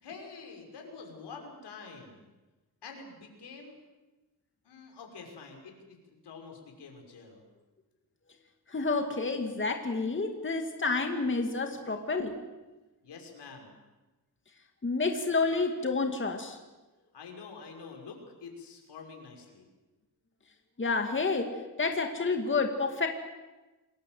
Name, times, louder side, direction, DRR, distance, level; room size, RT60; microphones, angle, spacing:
voice 1, 0.0-2.3 2.8-3.8 4.6-7.4 11.7-11.8 13.0-13.7 17.1-19.7, left 4 dB, 85° left, 2 dB, 6.0 m, -47 dB
voice 2, 8.7-12.4 14.8-16.6 20.8-21.5 21.8-23.1, left 3 dB, 30° left, 4 dB, 2.4 m, -29 dB
28.0 x 21.0 x 8.0 m, 1.1 s
wide cardioid pair, 120°, 40 cm